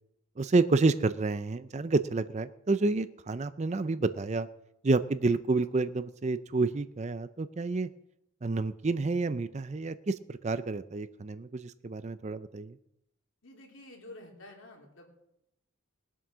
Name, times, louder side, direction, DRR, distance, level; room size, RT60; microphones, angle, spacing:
voice 1, 0.4-4.5 4.8-7.9 8.4-12.8, right 3 dB, 30° right, 13 dB, 0.4 m, -29 dB
voice 2, 13.4-15.1, left 1 dB, 60° left, 1 dB, 2.9 m, -49 dB
21.0 x 7.5 x 6.1 m, 0.84 s
head